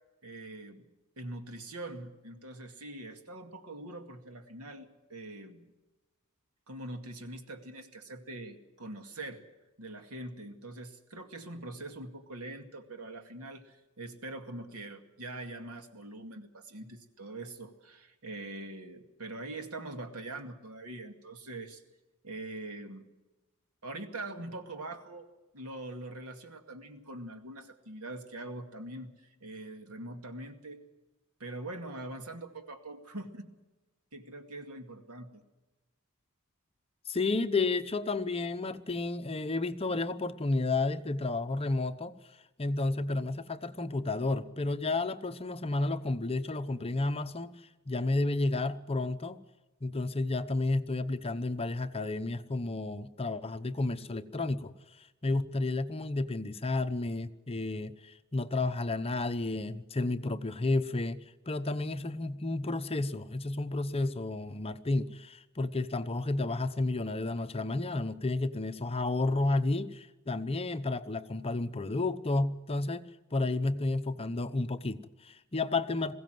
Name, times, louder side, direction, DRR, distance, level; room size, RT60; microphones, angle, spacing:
voice 1, 0.2-0.9 1.2-5.7 6.7-9.4 9.8-21.8 22.2-23.1 23.8-25.3 25.5-30.8 31.4-33.5 34.1-35.4, right 2 dB, 90° right, 2.3 m, -43 dB
voice 2, 37.1-42.2 42.6-47.5 47.9-49.4 49.8-54.7 55.2-73.0 73.3-76.1, left 2 dB, 25° left, 0.9 m, -31 dB
21.5 x 16.5 x 7.8 m
head